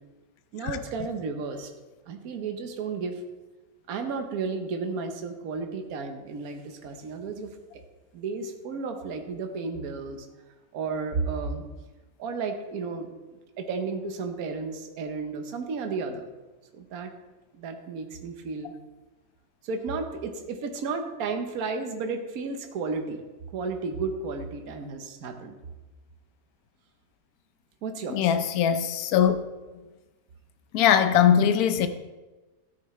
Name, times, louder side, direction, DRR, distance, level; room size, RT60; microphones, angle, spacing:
voice 1, 0.5-1.7 2.1-3.2 3.9-7.6 8.1-10.3 10.7-11.6 12.2-13.1 13.6-16.3 16.7-17.1 17.5-18.7 19.6-23.2 23.5-25.5 27.8-28.3, right 4 dB, 60° right, 1.4 m, -33 dB
voice 2, 28.1-29.4 30.7-31.9, left 9 dB, 65° left, 1.1 m, -21 dB
13.0 x 9.1 x 3.2 m
omnidirectional pair, 1.8 m